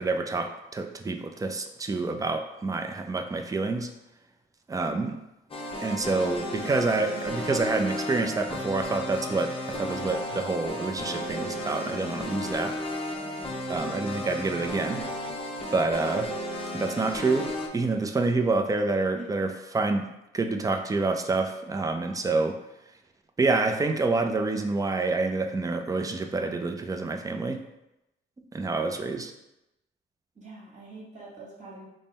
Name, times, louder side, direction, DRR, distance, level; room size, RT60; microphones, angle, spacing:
voice 1, 0.0-3.9 4.7-5.2 5.8-12.8 13.7-15.1 15.7-16.3 16.7-20.1 20.3-22.6 23.4-27.6 28.5-29.3, right 3 dB, 15° right, 5 dB, 0.4 m, -27 dB
sound 1, 5.5-17.7, left 1 dB, 30° left, 0.6 m, -34 dB
voice 2, 13.2-13.6 19.1-19.3 30.3-31.9, right 3 dB, 40° right, -5 dB, 1.5 m, -45 dB
3.6 x 2.1 x 4.1 m, 0.91 s
cardioid pair, 90°, 20 cm